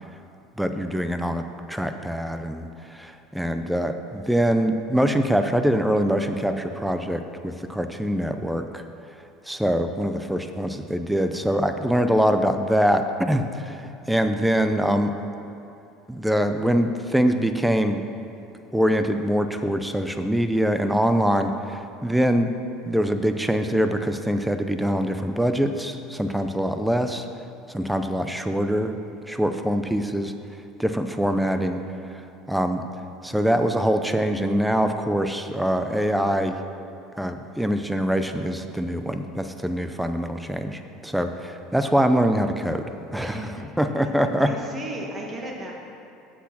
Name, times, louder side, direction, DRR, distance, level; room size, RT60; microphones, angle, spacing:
voice 1, 0.6-8.8 9.5-15.2 16.1-18.0 18.7-22.5 22.9-27.3 27.7-28.9 29.2-30.3 30.8-31.8 32.1-32.8 33.2-36.6 37.2-43.5 43.8-44.5, equal, 5° right, 8 dB, 0.5 m, -24 dB
voice 2, 43.2-43.8 44.4-45.7, right 1 dB, 25° right, -1 dB, 1.7 m, -35 dB
8.2 x 6.2 x 5.9 m, 2.8 s
supercardioid pair, 105°, 0 cm